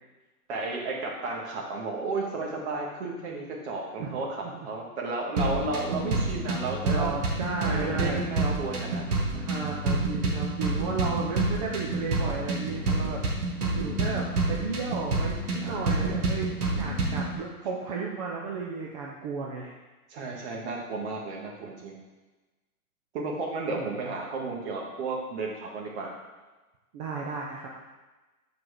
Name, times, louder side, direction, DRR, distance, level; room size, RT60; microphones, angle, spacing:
voice 1, 0.5-7.1 7.6-9.1 9.3-9.5 15.6-16.2 20.1-21.9 23.1-26.1, right 3 dB, 45° right, -1 dB, 1.8 m, -33 dB
sound 1, 5.4-17.4, right 2 dB, 75° right, 2.0 m, -28 dB
voice 2, 6.8-8.5 9.5-19.7 23.8-23.9 26.9-27.7, right 4 dB, 25° right, -2 dB, 0.6 m, -34 dB
6.5 x 4.7 x 4.8 m, 1.2 s
hypercardioid pair, 145°, 45 cm